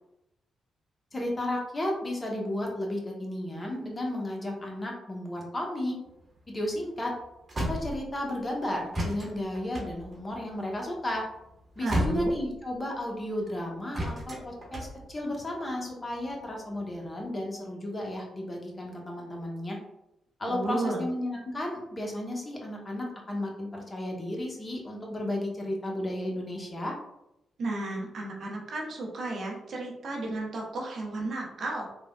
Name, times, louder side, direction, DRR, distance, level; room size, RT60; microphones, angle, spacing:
voice 1, 1.1-6.0 6.5-7.1 7.7-11.3 11.8-19.8 20.4-26.9, left 1 dB, 30° left, -1 dB, 0.8 m, -33 dB
sound 1, 6.1-8.5 8.9-12.9 13.9-15.6 16.1-17.1, equal, 40° right, 0.9 m, -34 dB
voice 2, 11.8-12.3 20.5-21.0 27.6-31.9, right 2 dB, 60° right, -1 dB, 0.6 m, -33 dB
3.3 x 2.1 x 2.2 m, 0.87 s
hypercardioid pair, 40°, 0 cm